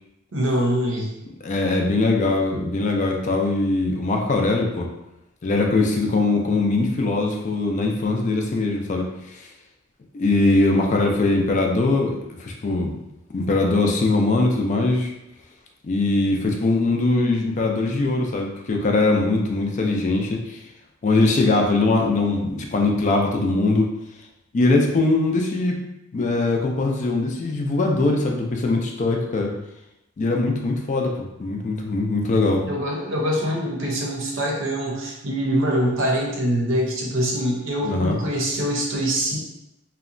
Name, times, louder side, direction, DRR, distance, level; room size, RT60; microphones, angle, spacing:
voice 1, 0.3-1.1 32.7-39.4, equal, 70° right, -1 dB, 0.6 m, -24 dB
voice 2, 1.4-4.9 5.4-9.5 10.1-12.9 13.3-15.1 15.8-20.6 21.0-23.9 24.5-25.8 26.1-29.5 30.2-32.6 37.8-38.2, left 2 dB, 35° left, 1 dB, 0.3 m, -21 dB
2.8 x 2.1 x 2.5 m, 0.87 s
head